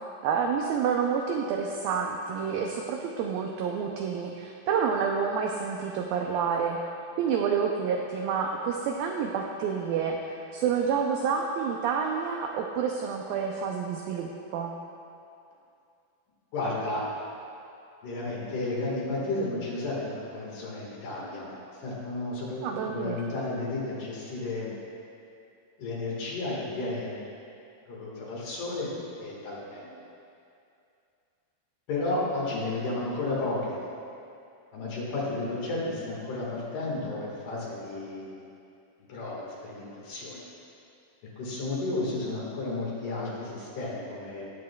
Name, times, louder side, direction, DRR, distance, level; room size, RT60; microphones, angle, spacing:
voice 1, 0.2-6.8 7.2-14.7 22.6-23.2, right 6 dB, 85° right, 1 dB, 2.0 m, -29 dB
voice 2, 16.5-17.0 18.0-21.5 21.8-22.6 22.9-24.7 25.8-27.2 27.9-28.9 29.2-29.9 31.9-33.8 34.7-38.5 39.1-40.4 41.4-44.5, left 2 dB, 60° left, -5 dB, 3.0 m, -32 dB
18.5 x 7.6 x 2.3 m, 2.5 s
omnidirectional pair, 4.7 m